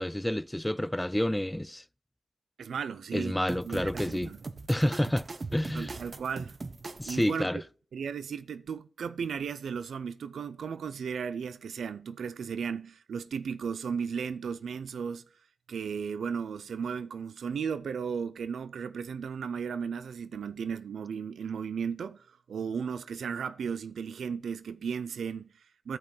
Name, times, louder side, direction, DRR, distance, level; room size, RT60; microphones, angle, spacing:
voice 1, 0.0-1.8 3.1-4.3 4.7-6.0 7.0-7.6, left 1 dB, 10° left, 0.4 m, -29 dB
voice 2, 2.6-3.4 3.6-4.4 5.7-6.6 7.0-7.6 7.9-15.2 15.7-26.0, right 6 dB, 75° right, 0.4 m, -35 dB
sound 1, 3.5-7.3, right 3 dB, 45° right, 0.8 m, -41 dB
14.5 x 5.3 x 3.2 m
supercardioid pair, 40°, 0 cm